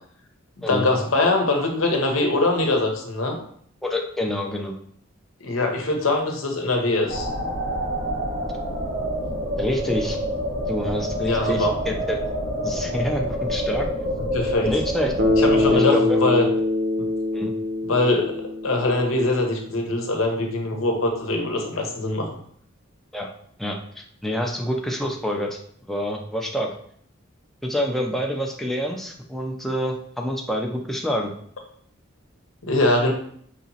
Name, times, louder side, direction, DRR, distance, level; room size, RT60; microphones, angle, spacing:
voice 1, 0.6-3.4 5.4-7.3 11.2-11.7 14.3-14.7 15.4-16.5 17.0-17.1 17.8-22.3 32.6-33.1, left 2 dB, 90° left, 3 dB, 0.8 m, -22 dB
voice 2, 3.8-4.7 9.6-10.2 10.7-12.2 12.6-13.9 14.6-15.1 15.7-16.3 17.3-17.5 23.1-23.3 23.6-25.6 25.8-26.7 27.6-31.3, left 1 dB, ahead, 0 dB, 0.4 m, -27 dB
sound 1, 7.1-15.8, equal, 75° right, 1.0 m, -27 dB
Bass guitar, 15.2-19.4, left 2 dB, 55° right, 0.7 m, -23 dB
5.0 x 2.9 x 2.7 m, 0.62 s
head